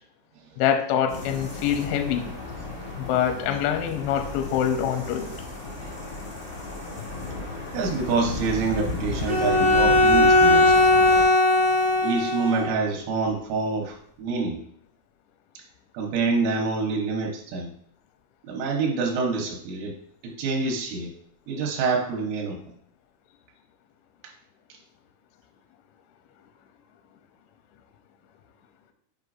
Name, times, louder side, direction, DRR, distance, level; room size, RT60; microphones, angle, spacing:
voice 1, 0.6-2.3 3.0-5.3, left 9 dB, 85° left, 5 dB, 2.8 m, -25 dB
sound 1, 1.1-11.2, left 2 dB, 60° left, 0.9 m, -34 dB
voice 2, 7.7-10.9 12.0-14.6 15.9-17.7 18.4-19.9 20.2-21.1 21.5-22.6, right 4 dB, 80° right, 0 dB, 3.2 m, -26 dB
Bowed string instrument, 9.3-12.8, left 1 dB, 50° right, 0.8 m, -18 dB
7.9 x 5.0 x 2.5 m, 0.69 s
omnidirectional pair, 5.7 m